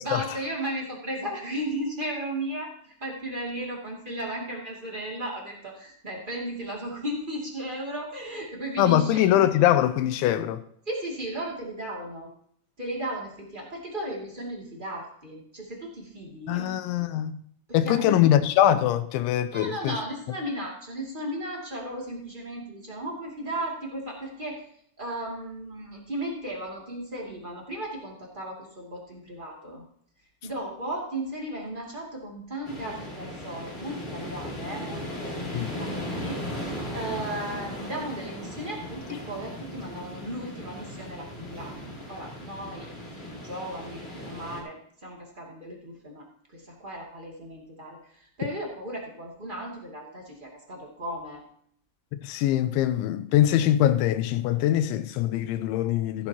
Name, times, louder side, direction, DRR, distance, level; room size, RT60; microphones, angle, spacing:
voice 1, 0.0-9.2 10.8-12.3 12.8-16.7 17.7-18.1 19.5-24.6 25.0-29.8 30.4-36.6 36.9-41.8 42.1-42.9 43.2-51.4, right 1 dB, 20° right, 1.4 m, -35 dB
voice 2, 8.8-10.6 16.5-17.4 17.7-20.0 35.5-35.7 52.2-56.3, left 12 dB, 85° left, 3.0 m, -23 dB
sound 1, 32.6-44.6, left 1 dB, 20° left, 2.2 m, -37 dB
15.0 x 11.0 x 2.9 m
omnidirectional pair, 5.2 m